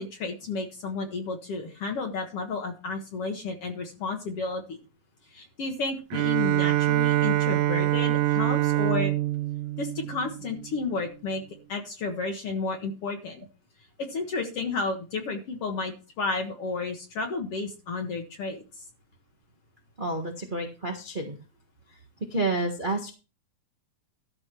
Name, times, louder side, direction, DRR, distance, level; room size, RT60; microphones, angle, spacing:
voice 1, 0.0-4.8 5.3-9.1 9.8-11.4 11.7-13.5 14.0-18.6, left 3 dB, 55° left, 2 dB, 2.2 m, -32 dB
Bowed string instrument, 6.1-10.8, right 15 dB, 90° right, 2.1 m, -25 dB
voice 2, 20.0-21.4 22.3-23.1, right 2 dB, 30° right, 1 dB, 0.9 m, -29 dB
13.0 x 5.0 x 5.9 m, 0.32 s
omnidirectional pair, 3.3 m